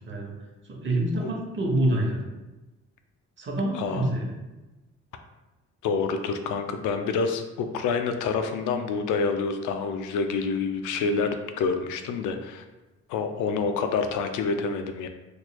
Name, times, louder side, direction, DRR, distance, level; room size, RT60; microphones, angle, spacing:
voice 1, 0.7-2.2 3.4-4.3, right 1 dB, 40° right, 0 dB, 0.9 m, -26 dB
voice 2, 3.7-4.1 5.8-12.6 13.1-15.1, left 5 dB, 85° left, 7 dB, 0.4 m, -27 dB
3.9 x 3.1 x 2.2 m, 1.1 s
cardioid pair, 90°, 30 cm